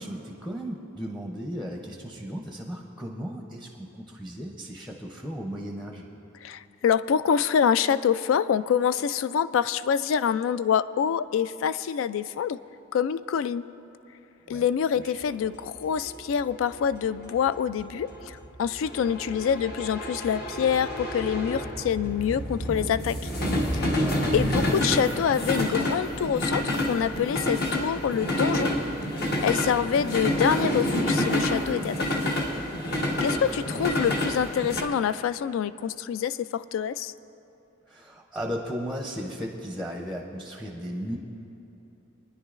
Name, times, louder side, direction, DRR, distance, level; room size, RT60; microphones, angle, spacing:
voice 1, 0.0-6.1 14.5-14.7 15.0-15.1 23.9-24.2 33.2-33.9 37.9-41.2, equal, ahead, 0 dB, 0.6 m, -36 dB
voice 2, 6.4-12.6 12.9-13.7 14.5-23.2 23.7-23.9 24.3-28.7 29.4-32.2 33.2-37.1, left 8 dB, 85° left, 16 dB, 0.3 m, -26 dB
sound 1, 15.3-34.8, left 1 dB, 55° left, 1.2 m, -28 dB
24.0 x 10.0 x 2.5 m, 3.0 s
head